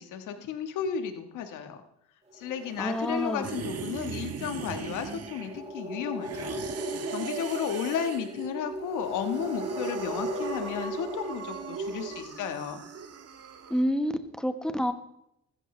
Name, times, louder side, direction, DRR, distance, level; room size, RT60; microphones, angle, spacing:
voice 1, 0.0-1.8 2.3-6.6 7.1-12.8, left 8 dB, 85° left, 7 dB, 1.5 m, -33 dB
sound 1, 2.3-12.2, right 1 dB, 25° right, 5.9 m, -38 dB
voice 2, 2.8-3.5 13.7-14.9, equal, ahead, 8 dB, 1.3 m, -28 dB
sound 2, 3.4-5.7 6.2-8.5 9.1-13.8, right 6 dB, 55° right, 1.4 m, -39 dB
15.0 x 14.0 x 3.3 m, 0.79 s
cardioid pair, 90°, 30 cm